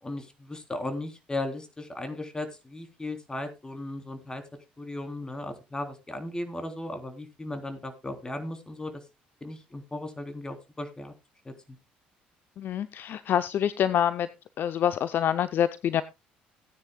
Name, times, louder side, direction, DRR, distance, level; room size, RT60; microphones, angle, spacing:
voice 1, 0.0-4.4 4.8-8.9 9.4-11.1 11.4-11.5, left 2 dB, 15° left, 7 dB, 3.3 m, -36 dB
voice 2, 12.6-14.3 14.6-16.0, left 10 dB, 50° left, 14 dB, 0.6 m, -26 dB
17.0 x 9.8 x 2.2 m, 0.25 s
hypercardioid pair, 55°, 4 cm